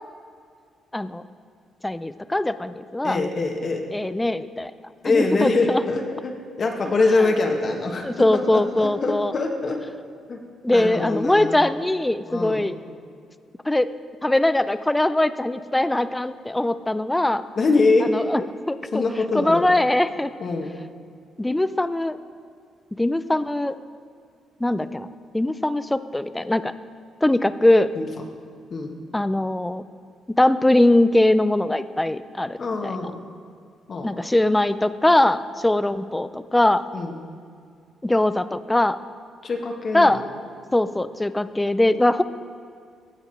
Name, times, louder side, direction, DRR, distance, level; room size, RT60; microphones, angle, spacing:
voice 1, 1.8-3.2 3.9-4.7 5.0-5.8 7.2-7.3 8.0-9.3 10.6-12.7 13.7-13.9 14.2-17.4 18.0-19.0 19.3-20.3 21.4-22.2 23.0-23.8 24.6-26.7 27.2-27.9 29.1-29.8 30.4-33.1 34.0-36.8 38.0-39.0 39.9-40.2 40.7-42.2, left 1 dB, 10° left, 13 dB, 0.4 m, -21 dB
voice 2, 3.0-3.8 5.0-9.8 10.3-10.4 10.7-11.6 12.3-12.6 17.5-18.1 18.9-19.7 20.4-20.7 27.9-28.1 28.7-28.9 32.6-33.1 33.9-34.1 36.9-37.2 39.4-40.2, left 3 dB, 45° left, 2 dB, 1.2 m, -23 dB
16.0 x 5.8 x 4.5 m, 2.3 s
cardioid pair, 90°, 0 cm